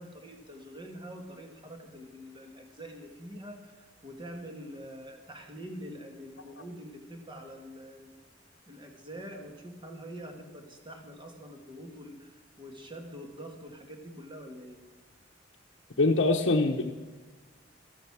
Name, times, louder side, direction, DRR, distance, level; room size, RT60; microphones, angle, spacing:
voice 1, 0.0-8.3 8.7-14.8, equal, 25° right, 4 dB, 1.9 m, -45 dB
voice 2, 16.0-16.9, left 2 dB, 65° left, -2 dB, 1.0 m, -24 dB
13.5 x 12.5 x 6.1 m, 1.2 s
head